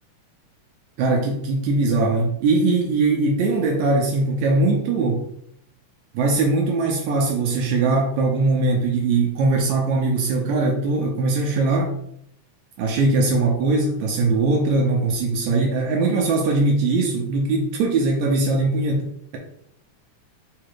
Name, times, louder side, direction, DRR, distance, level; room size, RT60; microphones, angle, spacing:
voice 1, 1.0-5.3 6.1-11.9 12.8-19.1, right 3 dB, 80° right, 0 dB, 1.9 m, -21 dB
4.9 x 2.4 x 4.5 m, 0.72 s
omnidirectional pair, 3.4 m